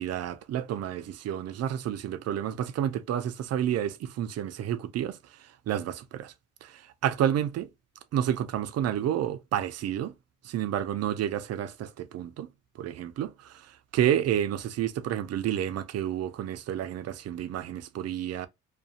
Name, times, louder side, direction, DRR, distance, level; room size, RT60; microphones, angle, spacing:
voice 1, 0.0-6.3 6.6-7.7 8.1-10.1 10.4-12.5 12.8-18.5, right 10 dB, 55° right, 0.4 m, -30 dB
2.5 x 2.1 x 2.6 m
cardioid pair, 90°, 30 cm